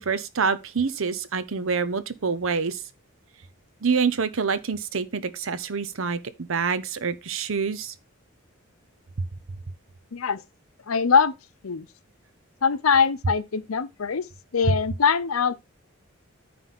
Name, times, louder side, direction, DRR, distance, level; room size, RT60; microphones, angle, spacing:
voice 1, 0.0-2.8 3.8-6.2 6.5-7.9, right 5 dB, 65° right, 0.8 m, -26 dB
voice 2, 10.9-11.3 11.6-11.9 12.6-14.3 14.5-15.6, left 6 dB, 80° left, 0.7 m, -22 dB
9.3 x 3.4 x 5.9 m
head